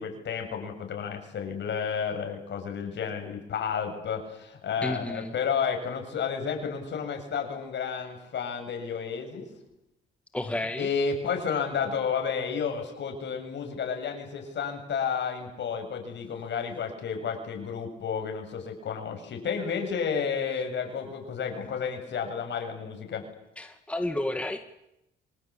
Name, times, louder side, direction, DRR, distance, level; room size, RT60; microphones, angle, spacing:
voice 1, 0.0-9.5 10.8-23.2, left 6 dB, 65° left, 4 dB, 7.6 m, -31 dB
voice 2, 4.8-5.4 10.3-10.9 23.6-24.6, left 1 dB, 5° left, 6 dB, 1.9 m, -31 dB
26.5 x 26.0 x 8.6 m, 0.87 s
cardioid pair, 90°, 20 cm